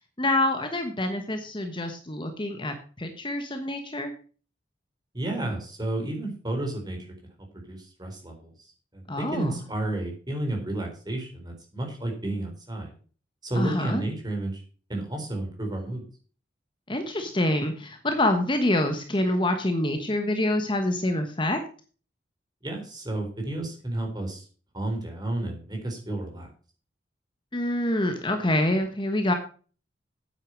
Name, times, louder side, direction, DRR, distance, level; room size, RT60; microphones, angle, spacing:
voice 1, 0.2-4.1 9.1-9.6 13.5-14.0 16.9-21.6 27.5-29.3, left 1 dB, 25° left, 6 dB, 1.2 m, -26 dB
voice 2, 5.1-7.1 7.5-8.5 8.9-12.9 13.4-14.6 14.9-16.0 22.6-24.5 24.7-26.5, right 1 dB, 20° right, 2 dB, 3.9 m, -31 dB
9.2 x 8.6 x 6.3 m, 0.40 s
head